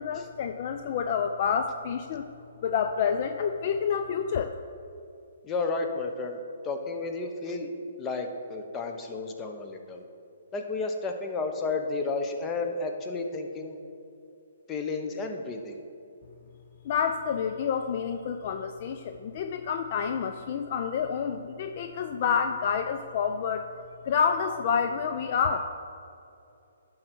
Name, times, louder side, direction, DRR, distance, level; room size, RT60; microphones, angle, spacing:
voice 1, 0.0-2.2 2.6-4.5 16.8-23.7 24.1-25.7, left 6 dB, 45° left, 7 dB, 0.4 m, -28 dB
voice 2, 5.4-6.4 6.6-7.7 8.0-10.0 10.5-13.8 14.7-15.8, left 3 dB, 20° left, 4 dB, 0.9 m, -32 dB
11.5 x 3.9 x 6.0 m, 2.7 s
hypercardioid pair, 145°, 0 cm